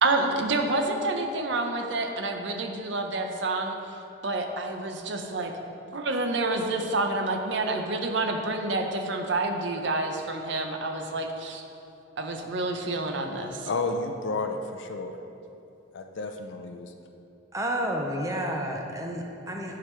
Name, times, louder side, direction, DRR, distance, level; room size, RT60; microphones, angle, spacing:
voice 1, 0.0-3.8 4.2-5.5 5.9-11.6 12.2-13.7, right 2 dB, 60° right, 4 dB, 0.7 m, -28 dB
voice 2, 13.7-15.2 15.9-16.9, left 3 dB, 65° left, 5 dB, 0.4 m, -31 dB
voice 3, 17.5-19.8, equal, 15° right, 1 dB, 0.5 m, -30 dB
11.0 x 4.9 x 3.2 m, 2.8 s
head